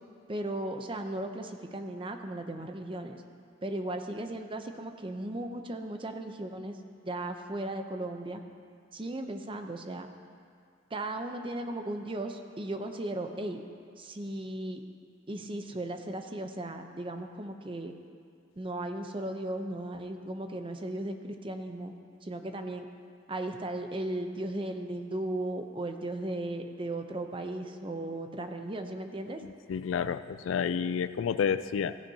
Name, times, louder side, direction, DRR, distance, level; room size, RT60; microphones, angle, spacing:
voice 1, 0.3-3.2 3.6-6.8 7.0-8.4 8.9-10.1 10.9-13.6 14.0-14.8 15.3-17.9 18.6-21.9 22.2-22.9 23.3-29.4, right 1 dB, 25° right, 6 dB, 0.7 m, -36 dB
voice 2, 29.4-32.0, left 7 dB, 85° left, 13 dB, 0.3 m, -30 dB
15.5 x 15.0 x 2.8 m, 2.3 s
head